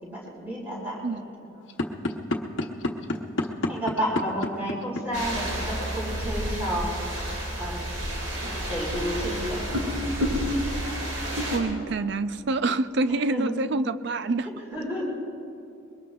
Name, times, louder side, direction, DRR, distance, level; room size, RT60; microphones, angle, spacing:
voice 1, 0.0-1.2 1.5-1.6 3.7-7.0 7.6-7.9 8.4-9.6 13.1-13.5 14.7-15.1, equal, 10° right, -6 dB, 4.9 m, -31 dB
sound 1, 1.7-5.7, left 2 dB, 60° left, 1.1 m, -28 dB
sound 2, 5.1-11.6, equal, 85° right, 4.8 m, -30 dB
voice 2, 11.5-14.5, right 3 dB, 55° right, 12 dB, 0.5 m, -26 dB
24.5 x 22.0 x 2.4 m, 2.7 s
head